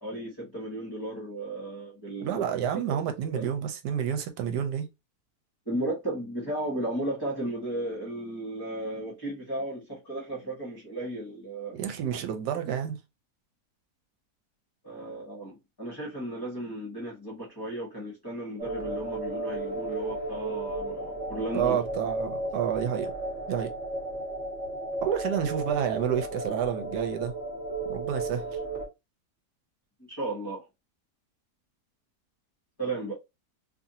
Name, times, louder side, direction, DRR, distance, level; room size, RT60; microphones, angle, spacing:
voice 1, 0.0-2.4 2.9-3.4 5.7-11.8 14.8-21.8 30.0-30.7 32.8-33.2, right 1 dB, 15° left, 0.9 m, -35 dB
voice 2, 2.2-4.9 11.7-13.0 21.5-23.1 23.5-23.7 25.0-27.3 27.9-28.4, right 9 dB, 85° right, 1.2 m, -29 dB
sound 1, 18.6-28.9, right 2 dB, 50° right, 1.3 m, -34 dB
2.6 x 2.6 x 2.7 m
omnidirectional pair, 1.7 m